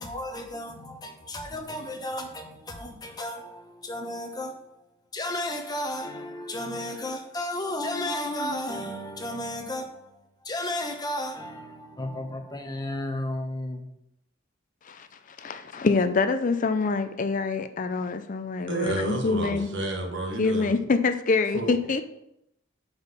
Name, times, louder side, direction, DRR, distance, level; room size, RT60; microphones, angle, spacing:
voice 1, 0.0-4.8 5.1-13.8, left 1 dB, 20° left, 1.0 m, -33 dB
voice 2, 14.8-19.7 20.4-22.0, left 4 dB, 40° left, 0.5 m, -26 dB
voice 3, 18.7-20.8 21.5-21.8, right 1 dB, 65° right, 1.4 m, -30 dB
6.2 x 5.2 x 5.4 m
head